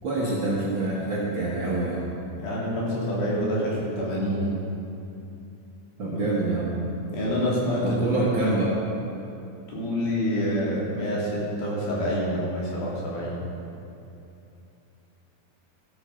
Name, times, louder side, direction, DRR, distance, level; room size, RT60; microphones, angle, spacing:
voice 1, 0.0-2.0 6.0-6.7 7.8-8.7, right 2 dB, 55° right, -6 dB, 1.4 m, -26 dB
voice 2, 2.4-4.6 6.0-6.2 7.1-8.6 9.7-13.3, equal, 80° left, -6 dB, 4.6 m, -27 dB
13.5 x 8.7 x 6.2 m, 2.7 s
omnidirectional pair, 4.1 m